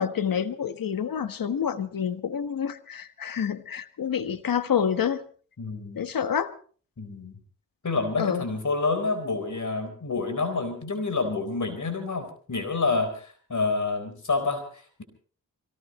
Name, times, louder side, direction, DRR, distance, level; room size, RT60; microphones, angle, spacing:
voice 1, 0.0-5.2 5.9-6.5 8.2-8.4, left 8 dB, 80° left, 11 dB, 1.4 m, -28 dB
voice 2, 5.6-6.0 7.0-7.3 7.8-15.0, left 3 dB, 60° left, 7 dB, 4.3 m, -28 dB
24.5 x 19.0 x 3.2 m, 0.42 s
cardioid pair, 50°, 34 cm